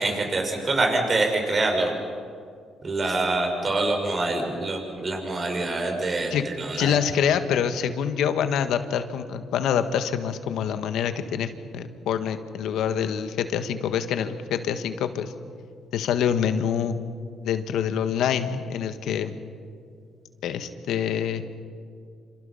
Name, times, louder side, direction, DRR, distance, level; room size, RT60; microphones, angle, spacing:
voice 1, 0.0-1.9 2.8-6.9, right 2 dB, 40° right, 3 dB, 5.7 m, -25 dB
voice 2, 6.8-15.3 15.9-17.0 17.4-19.3 20.4-21.4, left 8 dB, 80° left, 9 dB, 1.5 m, -26 dB
28.0 x 27.0 x 5.7 m, 2.3 s
cardioid pair, 90°, 0 cm